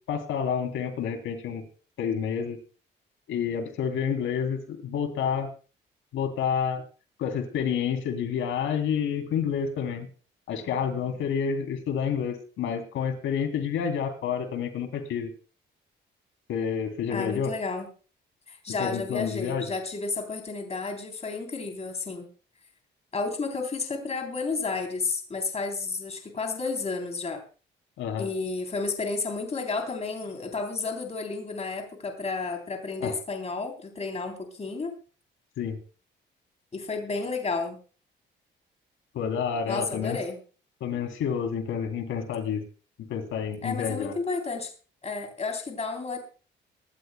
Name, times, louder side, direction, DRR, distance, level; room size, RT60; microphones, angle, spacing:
voice 1, 0.1-1.6 2.0-2.6 3.3-5.5 6.1-6.8 7.2-10.1 10.5-15.3 16.5-17.5 18.8-19.7 28.0-28.3 33.0-33.2 35.6-35.8 39.1-40.2 40.8-42.6 43.1-44.1, left 7 dB, 80° left, 6 dB, 3.2 m, -29 dB
voice 2, 17.1-17.9 18.5-22.3 23.1-27.4 28.2-34.9 36.7-37.8 39.7-40.4 43.6-44.7 45.0-46.2, left 4 dB, 35° left, 4 dB, 3.6 m, -32 dB
25.0 x 12.5 x 2.2 m, 0.37 s
cardioid pair, 90°, 20 cm